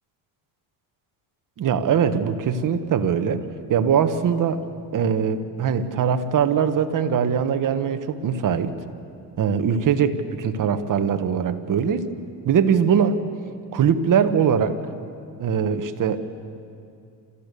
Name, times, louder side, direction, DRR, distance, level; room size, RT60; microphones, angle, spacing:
voice 1, 1.6-3.4 3.7-4.6 4.9-8.7 9.4-12.0 12.4-13.2 13.7-14.8 15.4-16.2, right 7 dB, 45° right, 9 dB, 1.4 m, -21 dB
28.5 x 14.0 x 6.9 m, 2.4 s
cardioid pair, 100°, 45 cm